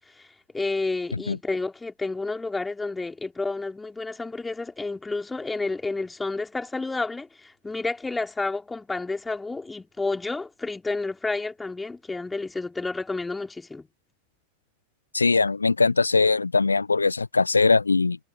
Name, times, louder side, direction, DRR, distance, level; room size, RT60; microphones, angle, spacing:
voice 1, 0.5-13.9, left 3 dB, 10° left, 3.5 m, -30 dB
voice 2, 15.1-18.2, left 4 dB, 80° left, 1.1 m, -21 dB
figure-of-eight pair, 90°, 0 cm